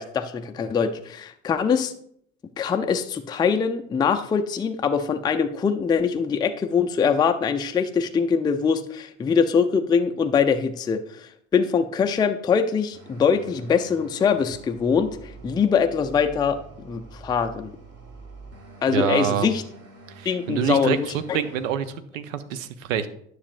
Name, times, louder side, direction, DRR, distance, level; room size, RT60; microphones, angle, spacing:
voice 1, 0.0-1.9 2.6-17.7 18.8-19.6 20.2-21.4, left 6 dB, 10° left, 7 dB, 0.4 m, -23 dB
sound 1, 12.9-21.7, right 3 dB, 35° right, 1.6 m, -46 dB
voice 2, 18.9-19.5 20.2-21.9 22.1-23.1, right 9 dB, 70° right, 12 dB, 0.7 m, -26 dB
9.8 x 6.3 x 2.5 m, 0.67 s
figure-of-eight pair, 55°, 41 cm